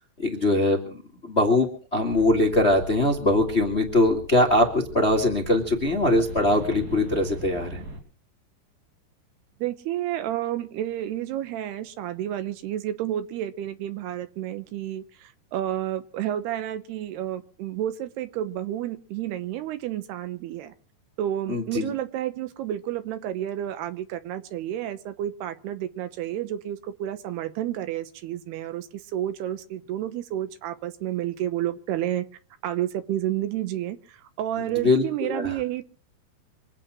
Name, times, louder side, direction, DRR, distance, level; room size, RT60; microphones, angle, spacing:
voice 1, 0.0-7.8 21.5-21.9 34.6-35.5, left 2 dB, 30° left, 2 dB, 1.2 m, -22 dB
sound 1, 2.1-8.0, right 1 dB, 60° right, 5.2 m, -39 dB
voice 2, 9.6-20.7 21.2-32.3 32.6-35.8, right 12 dB, 80° right, 11 dB, 3.0 m, -30 dB
25.5 x 8.7 x 6.2 m, 0.41 s
omnidirectional pair, 4.7 m